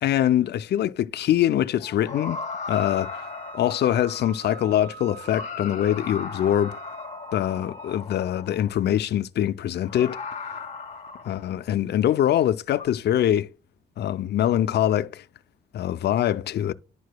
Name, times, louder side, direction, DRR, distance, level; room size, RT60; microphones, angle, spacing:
voice 1, 0.0-2.4 2.7-3.1 3.5-6.8 7.3-10.2 11.2-13.5 14.0-15.2 15.7-16.7, left 11 dB, 60° left, 0.5 m, -23 dB
sound 1, 1.7-4.5 5.1-8.9 9.8-11.7 12.7-12.9, left 4 dB, 35° left, 1.3 m, -37 dB
Wind instrument woodwind instrument, 2.7-8.1, right 7 dB, 65° right, 0.7 m, -45 dB
11.0 x 4.7 x 2.2 m
cardioid pair, 90°, 20 cm